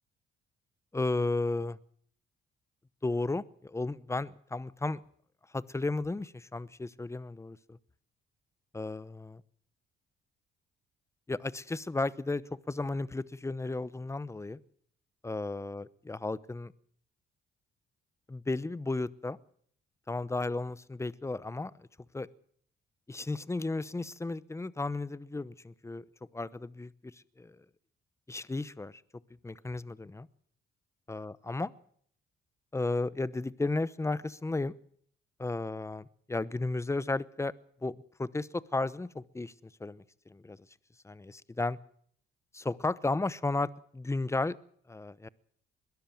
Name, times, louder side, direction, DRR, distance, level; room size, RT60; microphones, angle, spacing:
voice 1, 0.9-1.8 3.0-5.0 5.5-7.8 8.7-9.4 11.3-14.6 15.2-16.7 18.3-19.4 20.1-21.9 22.1-22.3 23.1-26.0 26.3-27.1 27.4-27.6 28.3-29.0 29.4-30.3 31.1-31.7 32.7-34.7 35.4-37.5 37.8-37.9 38.2-39.5 39.8-40.0 40.3-40.6 41.0-41.8 42.5-44.6 44.9-45.3, left 2 dB, 15° left, 18 dB, 0.9 m, -34 dB
21.5 x 13.0 x 9.3 m, 0.63 s
cardioid pair, 90°, 20 cm